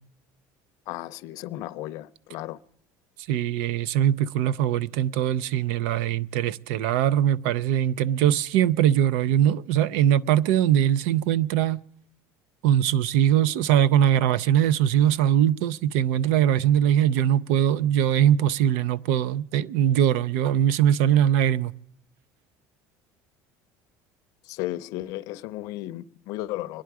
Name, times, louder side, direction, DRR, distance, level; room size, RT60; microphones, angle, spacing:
voice 1, 0.9-2.6 24.4-26.8, left 16 dB, 60° left, 0.6 m, -34 dB
voice 2, 3.3-11.8 12.6-21.7, right 10 dB, 85° right, 0.5 m, -21 dB
25.0 x 10.5 x 4.7 m
cardioid pair, 160°, 7 cm